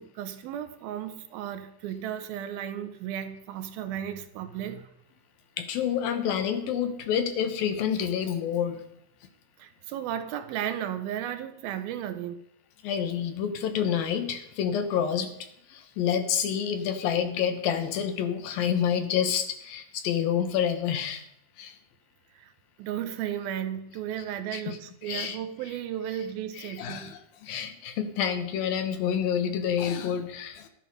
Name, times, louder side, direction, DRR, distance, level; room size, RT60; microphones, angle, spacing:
voice 1, 0.0-4.9 9.6-12.4 22.3-22.5 22.8-27.1, right 10 dB, 80° right, 2.7 m, -34 dB
voice 2, 5.6-8.8 12.8-15.3 15.7-21.2 21.6-21.8 24.5-25.4 26.6-30.7, left 8 dB, 75° left, 2.8 m, -28 dB
12.5 x 11.0 x 5.4 m
omnidirectional pair, 4.3 m